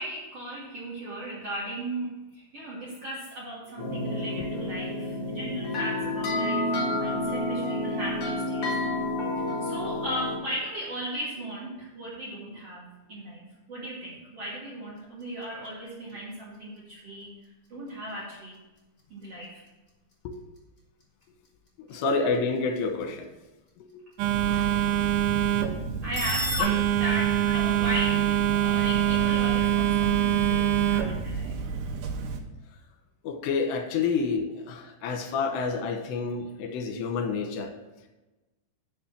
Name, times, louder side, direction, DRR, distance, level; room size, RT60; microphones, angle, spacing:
voice 1, 0.0-17.3 17.7-18.6 19.1-19.6 26.0-31.7, right 1 dB, 60° right, -6 dB, 1.6 m, -37 dB
sound 1, 3.8-10.4, left 2 dB, 50° left, 1.7 m, -29 dB
sound 2, 14.8-26.6, equal, 30° left, 1.0 m, -43 dB
voice 2, 21.9-23.3 33.2-37.7, left 4 dB, 75° left, 5 dB, 3.1 m, -28 dB
Telephone, 24.2-32.4, right 10 dB, 85° right, 3.2 m, -25 dB
7.2 x 5.1 x 7.2 m, 1.1 s
omnidirectional pair, 5.3 m